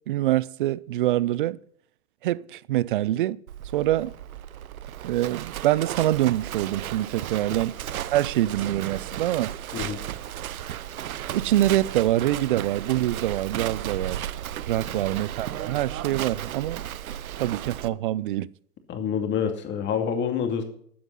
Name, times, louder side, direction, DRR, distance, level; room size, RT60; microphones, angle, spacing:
voice 1, 0.1-1.6 2.2-3.4 3.7-4.1 5.0-7.8 8.1-9.5 11.3-14.4 14.7-16.8 17.4-18.5, right 14 dB, 35° right, 0.4 m, -25 dB
Livestock farm animals working animals, 3.5-17.9, right 11 dB, 70° right, 0.9 m, -34 dB
voice 2, 18.9-20.6, left 7 dB, 25° left, 2.4 m, -27 dB
13.5 x 9.4 x 5.5 m
hypercardioid pair, 125°, 45 cm